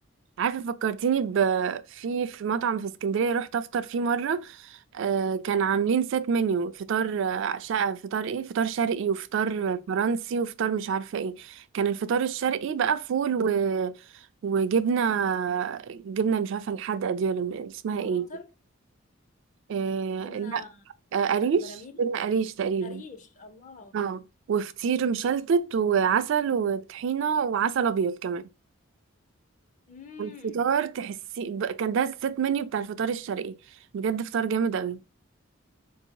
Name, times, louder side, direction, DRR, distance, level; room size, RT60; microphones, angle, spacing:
voice 1, 0.4-14.0 14.4-18.3 19.7-20.6 21.1-21.7 22.0-23.0 23.9-24.2 24.5-28.4 30.2-33.6 33.9-35.0, right 6 dB, 65° right, 0.3 m, -27 dB
voice 2, 18.0-18.5 20.2-20.8 21.2-22.1 22.8-24.0 29.9-30.6, left 4 dB, 40° left, 0.5 m, -46 dB
3.6 x 2.7 x 2.7 m
head